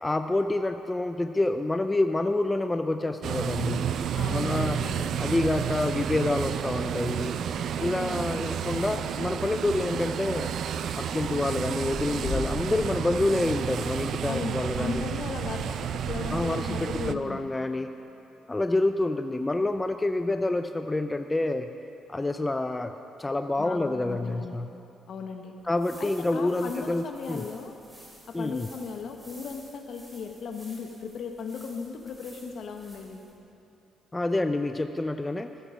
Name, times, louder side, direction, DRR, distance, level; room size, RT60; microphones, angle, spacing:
voice 1, 0.0-3.9 4.3-4.8 5.2-7.4 7.8-10.5 11.0-15.0 16.3-17.9 18.5-21.7 22.1-22.9 23.2-24.7 25.6-27.4 28.3-28.7 34.1-35.5, left 2 dB, 15° left, 8 dB, 0.4 m, -27 dB
sound 1, 3.2-6.9 7.2-7.6 8.0-8.6 9.5-9.7 10.0-10.3 11.7-14.4 15.3-17.7, left 3 dB, 35° left, 2.2 m, -43 dB
sound 2, 3.2-17.2, right 8 dB, 65° right, 0.3 m, -31 dB
voice 2, 4.2-5.2 14.2-15.7 15.9-17.5 23.6-24.6 25.1-25.5 26.0-27.7 28.3-33.2, left 5 dB, 65° left, 4 dB, 1.0 m, -37 dB
sound 3, 25.6-33.4, equal, 10° right, 2.5 m, -52 dB
14.5 x 6.8 x 5.0 m, 2.8 s
cardioid pair, 90°, 0 cm